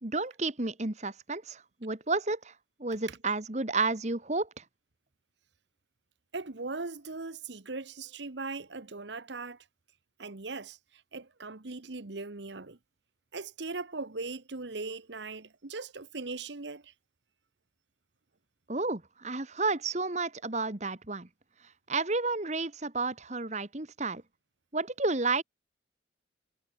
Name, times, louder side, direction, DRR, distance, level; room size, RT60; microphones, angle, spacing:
voice 1, 0.0-2.5 2.8-4.6 18.7-21.3 21.9-24.2 24.7-25.4, right 3 dB, 35° right, 1.5 m, -31 dB
voice 2, 6.3-9.6 10.2-10.8 11.1-12.8 13.3-16.9, right 3 dB, 70° right, 1.2 m, -39 dB
head